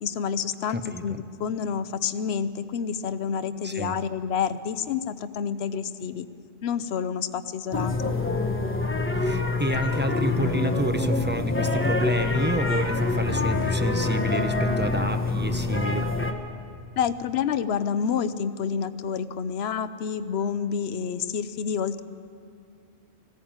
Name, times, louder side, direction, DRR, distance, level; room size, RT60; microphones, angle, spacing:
voice 1, 0.0-6.3 6.6-8.1 17.0-22.0, left 7 dB, 70° left, 12 dB, 1.0 m, -28 dB
voice 2, 0.7-1.2 3.6-3.9 9.2-16.1, right 1 dB, 10° right, 7 dB, 0.7 m, -29 dB
sound 1, 7.7-16.3, left 3 dB, 10° left, 1.1 m, -26 dB
19.5 x 16.0 x 8.8 m, 2.4 s
omnidirectional pair, 1.1 m